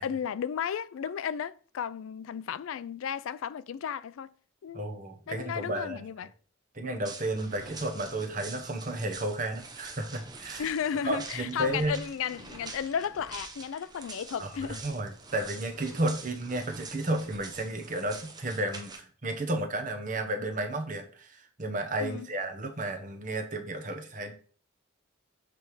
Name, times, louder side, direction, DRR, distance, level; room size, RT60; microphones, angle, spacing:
voice 1, 0.0-4.3 4.6-4.8 5.3-6.3 10.6-14.8 22.0-22.3, left 8 dB, 80° left, 0.3 m, -34 dB
voice 2, 4.7-6.0 6.7-10.7 11.0-12.0 14.4-14.5 14.8-24.3, right 1 dB, 40° right, 1.0 m, -32 dB
sound 1, 7.0-19.0, right 3 dB, 20° right, 0.6 m, -45 dB
7.5 x 3.4 x 4.7 m
head